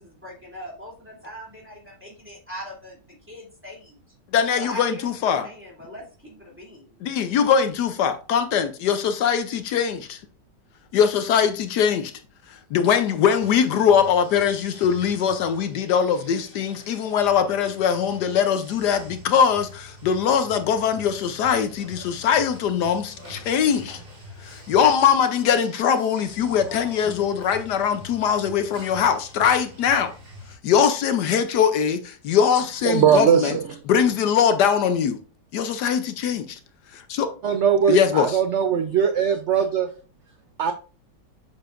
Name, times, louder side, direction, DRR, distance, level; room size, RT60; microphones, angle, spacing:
voice 1, 0.0-4.0 4.6-7.0, equal, 5° right, 2.8 m, -40 dB
voice 2, 4.3-5.5 7.0-10.2 10.9-12.1 12.7-24.0 24.4-30.1 30.6-33.6 33.9-35.2 35.5-36.6 36.9-37.3 37.9-38.4, left 7 dB, 75° left, 1.2 m, -21 dB
sound 1, 13.4-30.6, left 1 dB, 85° right, 4.3 m, -44 dB
voice 3, 32.8-33.8 37.4-39.9 40.6-40.7, right 8 dB, 70° right, 0.6 m, -20 dB
7.5 x 6.9 x 2.5 m
omnidirectional pair, 1.9 m